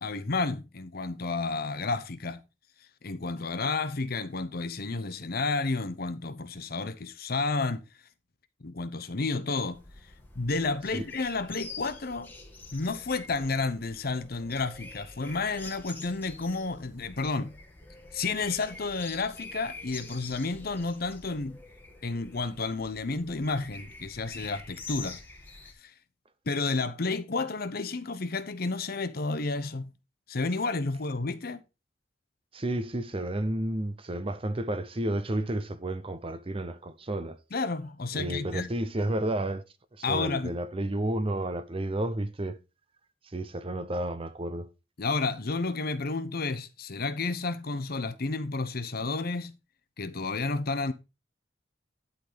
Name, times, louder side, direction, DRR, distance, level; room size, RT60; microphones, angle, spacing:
voice 1, 0.0-2.4 3.0-7.9 8.6-9.8 10.4-12.3 12.7-17.6 18.1-21.6 22.0-25.2 25.8-25.9 26.5-29.9 30.3-31.6 37.5-38.7 40.0-40.6 45.0-49.6 50.0-50.9, left 3 dB, 55° left, 0.8 m, -31 dB
sound 1, 9.7-25.7, left 3 dB, 10° left, 1.9 m, -46 dB
voice 2, 32.5-37.4 38.1-39.6 40.0-42.6 43.3-44.7, right 1 dB, 30° right, 0.7 m, -31 dB
11.0 x 4.0 x 5.0 m
head